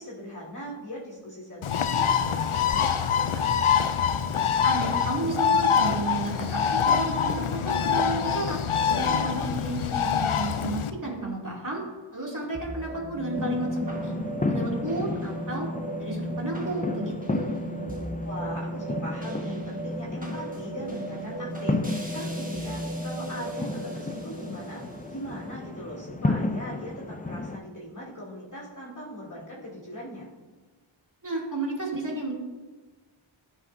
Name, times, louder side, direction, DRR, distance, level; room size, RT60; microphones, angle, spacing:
voice 1, 0.0-3.4 8.8-9.5 18.2-21.8 22.1-24.8 25.1-30.3, equal, 40° left, -7 dB, 2.8 m, -40 dB
Bird, 1.6-10.9, left 7 dB, 80° left, 0.6 m, -25 dB
voice 2, 4.6-8.6 8.9-11.8 12.1-14.2 14.5-15.7 16.0-17.6 31.2-32.3, right 2 dB, 40° right, -4 dB, 2.7 m, -32 dB
sound 1, 12.5-27.0, right 1 dB, 15° right, 1.4 m, -36 dB
sound 2, 13.3-27.6, left 2 dB, 20° left, 0.4 m, -33 dB
14.0 x 5.9 x 2.7 m, 1.3 s
wide cardioid pair, 50°, 49 cm